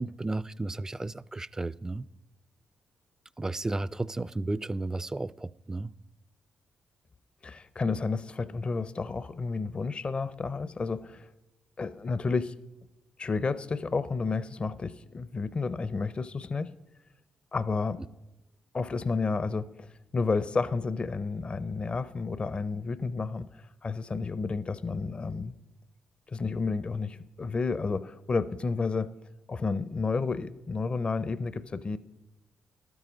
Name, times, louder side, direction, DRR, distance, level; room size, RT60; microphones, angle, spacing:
voice 1, 0.0-2.1 3.4-5.9, right 2 dB, 20° right, 0.3 m, -33 dB
voice 2, 7.4-11.3 11.8-12.5 13.2-16.7 17.5-18.0 18.7-19.9 20.1-25.5 26.3-29.1 29.5-32.0, left 4 dB, 40° left, 0.5 m, -31 dB
12.0 x 9.6 x 5.0 m
supercardioid pair, 60°, 3 cm